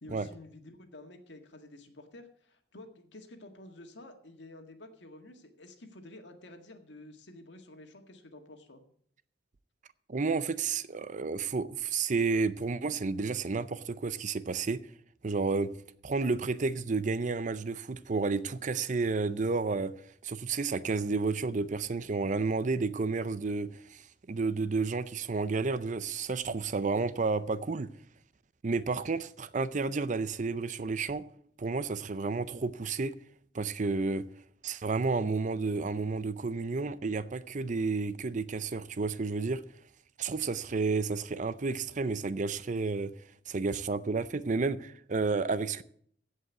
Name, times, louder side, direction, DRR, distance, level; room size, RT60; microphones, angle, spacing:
voice 1, 0.0-8.8, left 1 dB, 70° left, 1.8 m, -50 dB
voice 2, 10.1-14.8 15.2-15.7 16.0-19.9 20.2-27.9 28.6-31.2 31.6-33.1 33.5-34.2 34.6-39.6 40.2-43.1 43.5-45.8, right 4 dB, 40° right, 0.5 m, -31 dB
16.0 x 5.5 x 8.0 m
head